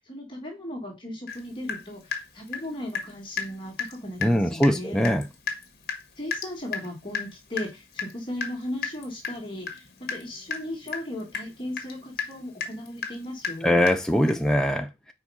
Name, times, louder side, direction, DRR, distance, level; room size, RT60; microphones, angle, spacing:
voice 1, 0.0-5.0 6.2-13.8, left 1 dB, 25° left, 1.8 m, -37 dB
Water tap faucet / Drip, 1.3-1.4 1.7-3.1 3.4-3.5 3.8-4.0 4.2-4.3 4.6-4.8 5.0-14.5, left 5 dB, 55° left, 1.4 m, -34 dB
voice 2, 4.2-5.2 13.6-15.1, equal, 5° left, 0.4 m, -22 dB
4.7 x 4.6 x 5.5 m
head